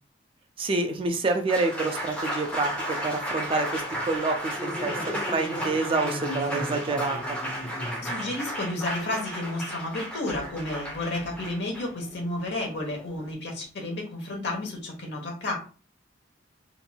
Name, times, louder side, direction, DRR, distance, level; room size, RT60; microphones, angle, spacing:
voice 1, 0.6-7.4, right 3 dB, 30° right, 5 dB, 0.3 m, -28 dB
Applause, 1.3-13.3, equal, 5° left, 0.7 m, -33 dB
voice 2, 8.0-15.5, left 2 dB, 60° left, 1 dB, 1.0 m, -32 dB
3.0 x 2.6 x 2.3 m, 0.38 s
head